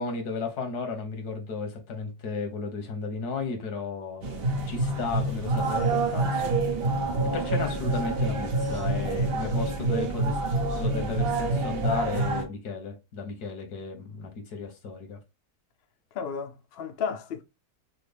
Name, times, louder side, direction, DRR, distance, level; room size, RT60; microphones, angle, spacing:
voice 1, 0.0-6.6 7.2-10.4 10.8-15.2, left 4 dB, 85° left, 1.7 m, -34 dB
sound 1, 4.2-12.4, right 2 dB, 45° right, 0.9 m, -27 dB
voice 2, 16.1-17.4, left 6 dB, 55° left, 0.6 m, -33 dB
5.6 x 2.2 x 3.4 m
omnidirectional pair, 1.6 m